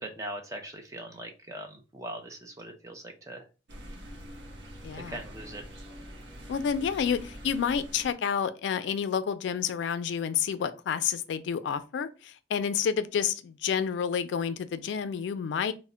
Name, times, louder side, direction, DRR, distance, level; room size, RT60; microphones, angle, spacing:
voice 1, 0.0-3.4 4.9-5.7, right 1 dB, 20° right, 0.4 m, -41 dB
sound 1, 3.7-8.1, equal, 80° right, 0.7 m, -45 dB
voice 2, 4.8-5.2 6.5-15.7, left 7 dB, 80° left, 0.3 m, -29 dB
2.1 x 2.0 x 3.6 m
head